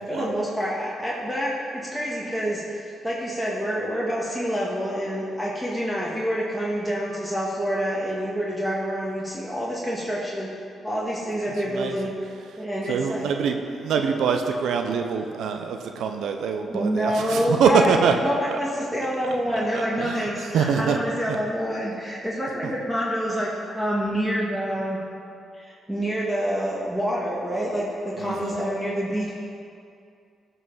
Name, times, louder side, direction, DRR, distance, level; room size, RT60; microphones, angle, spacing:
voice 1, 0.1-10.5 10.8-12.1 12.6-13.3 16.7-25.0 25.5-29.3, equal, 5° right, -6 dB, 2.0 m, -27 dB
voice 2, 11.6-12.1 12.5-18.2 18.5-18.6 19.5-21.0 28.2-28.6, right 6 dB, 75° right, 5 dB, 0.7 m, -25 dB
13.5 x 5.6 x 5.6 m, 2.4 s
supercardioid pair, 65°, 0 cm